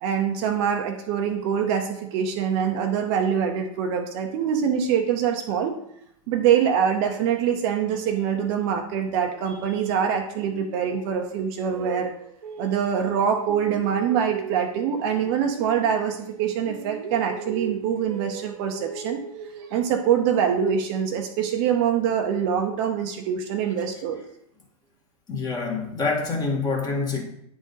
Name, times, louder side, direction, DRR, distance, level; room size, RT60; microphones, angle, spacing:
voice 1, 0.0-5.7 6.3-12.1 12.6-19.2 19.7-24.2, right 8 dB, 45° right, 0.9 m, -24 dB
sound 1, 10.4-13.2 13.5-16.4 16.7-20.2, right 7 dB, 85° right, 0.7 m, -38 dB
voice 2, 25.3-27.2, left 4 dB, 20° left, 1.7 m, -26 dB
8.8 x 3.9 x 4.0 m
hypercardioid pair, 120°, 19 cm